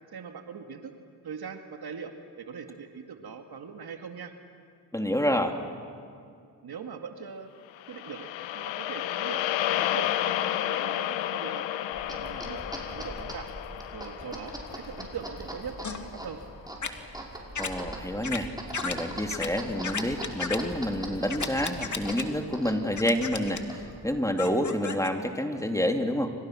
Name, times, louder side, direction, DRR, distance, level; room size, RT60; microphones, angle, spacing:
voice 1, 0.1-0.9 1.2-4.3 6.6-7.5 7.9-8.3 8.5-11.7 12.1-13.5 13.9-16.4, right 6 dB, 55° right, 5 dB, 2.1 m, -41 dB
voice 2, 4.9-5.6 17.6-18.5 18.8-26.3, equal, 5° left, 4 dB, 2.9 m, -28 dB
sound 1, 7.8-16.1, left 12 dB, 85° left, 1.0 m, -32 dB
sound 2, 11.9-24.1, right 1 dB, 10° right, 5.9 m, -41 dB
sound 3, 15.8-16.0 16.8-16.9 17.5-17.7 18.2-18.4 18.7-18.9 19.3-19.5 19.8-20.6 21.3-22.2 23.0-23.6 24.4-25.1, left 5 dB, 40° left, 2.4 m, -33 dB
29.0 x 25.0 x 6.2 m, 2.3 s
supercardioid pair, 45°, 44 cm